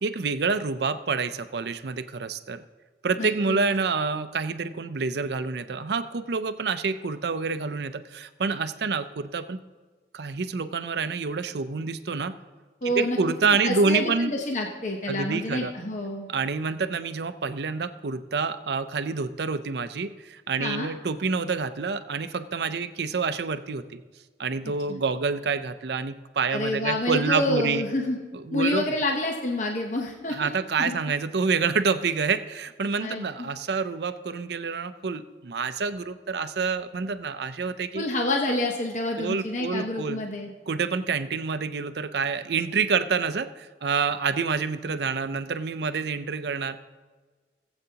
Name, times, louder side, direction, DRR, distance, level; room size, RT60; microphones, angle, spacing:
voice 1, 0.0-2.6 3.0-9.6 10.1-12.3 12.8-14.3 15.1-15.7 16.3-24.0 24.4-27.8 28.3-28.9 30.3-38.0 39.2-40.2 40.7-46.8, right 4 dB, 70° right, 11 dB, 0.5 m, -27 dB
voice 2, 3.2-3.6 12.8-13.2 13.6-16.3 20.6-20.9 24.9-25.0 26.5-28.2 28.5-30.5 30.8-31.0 33.0-33.5 37.9-40.5, left 1 dB, 45° left, 1 dB, 0.8 m, -28 dB
18.5 x 8.0 x 2.8 m, 1.4 s
head